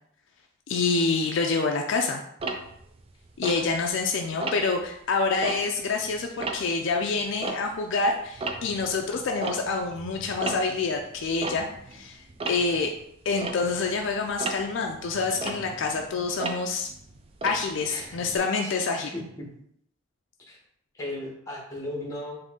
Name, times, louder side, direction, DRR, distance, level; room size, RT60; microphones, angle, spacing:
voice 1, 0.7-2.2 3.4-12.2 12.4-12.9 13.3-16.9 17.4-19.1, left 4 dB, 60° left, 2 dB, 0.4 m, -27 dB
Tick-tock, 2.4-4.0 4.4-4.8 5.3-8.0 8.3-18.4, right 2 dB, 30° right, 0.3 m, -36 dB
voice 2, 17.9-18.2 18.6-19.5 20.5-20.6 20.9-22.4, left 1 dB, 15° left, -3 dB, 0.9 m, -36 dB
3.9 x 2.6 x 3.6 m, 0.73 s
head